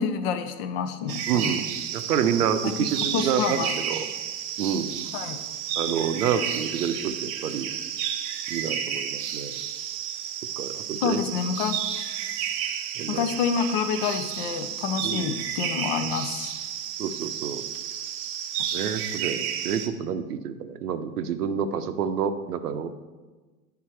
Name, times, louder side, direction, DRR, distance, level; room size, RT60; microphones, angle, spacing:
voice 1, 0.0-1.5 3.1-3.7 5.1-5.4 11.0-11.8 13.1-16.5, left 6 dB, 40° left, 8 dB, 0.5 m, -28 dB
sound 1, 1.1-19.9, right 9 dB, 35° right, 0.6 m, -32 dB
voice 2, 1.3-4.1 4.6-4.9 5.8-7.7 8.5-9.6 10.6-11.2 13.0-13.3 15.0-15.4 17.0-17.6 18.7-22.9, right 7 dB, 75° right, 10 dB, 0.7 m, -28 dB
9.4 x 3.7 x 4.4 m, 1.3 s
hypercardioid pair, 105°, 47 cm